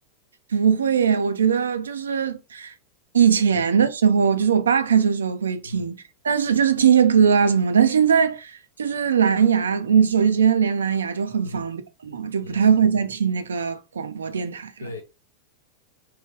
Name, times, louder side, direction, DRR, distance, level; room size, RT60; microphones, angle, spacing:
voice 1, 0.5-2.7 3.1-6.0 6.2-14.9, right 7 dB, 75° right, 0.4 m, -20 dB
voice 2, 3.5-3.6 5.6-5.9 11.4-11.7 12.4-12.7 14.8-15.0, left 3 dB, 80° left, 0.5 m, -37 dB
3.1 x 2.3 x 3.0 m
figure-of-eight pair, 90°, 0 cm